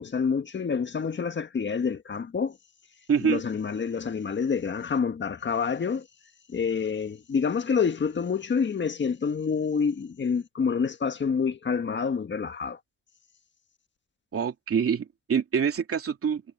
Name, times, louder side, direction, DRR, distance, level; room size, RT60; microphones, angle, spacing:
voice 1, 0.0-2.6 3.2-6.1 6.5-12.8, left 6 dB, 40° left, 1.6 m, -27 dB
voice 2, 3.1-3.4 14.3-16.4, right 7 dB, 50° right, 2.7 m, -25 dB
cardioid pair, 90°, 30 cm